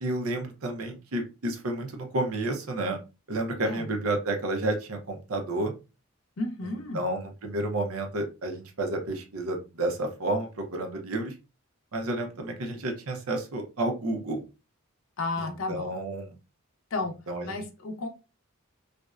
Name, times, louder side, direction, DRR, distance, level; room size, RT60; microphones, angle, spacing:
voice 1, 0.0-3.0 3.3-5.7 6.7-11.3 11.9-14.4 15.4-16.3 17.3-17.6, right 2 dB, 85° right, 4 dB, 0.6 m, -31 dB
voice 2, 6.4-7.1 15.2-15.9 16.9-17.1 17.4-18.1, left 2 dB, 70° left, 5 dB, 0.5 m, -32 dB
2.5 x 2.1 x 2.3 m, 0.29 s
head